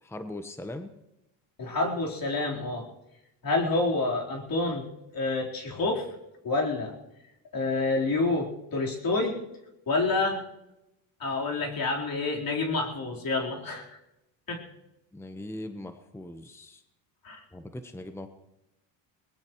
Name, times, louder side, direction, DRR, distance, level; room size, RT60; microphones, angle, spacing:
voice 1, 0.0-0.9 15.1-16.8 17.5-18.3, left 1 dB, 5° left, 8 dB, 1.1 m, -40 dB
voice 2, 1.6-2.8 3.4-4.8 5.1-6.1 6.4-6.9 7.5-9.4 9.9-10.4 11.2-13.8 14.5-14.6 17.2-17.4, left 3 dB, 45° left, -1 dB, 4.2 m, -28 dB
22.0 x 20.0 x 3.1 m, 0.91 s
supercardioid pair, 75°, 48 cm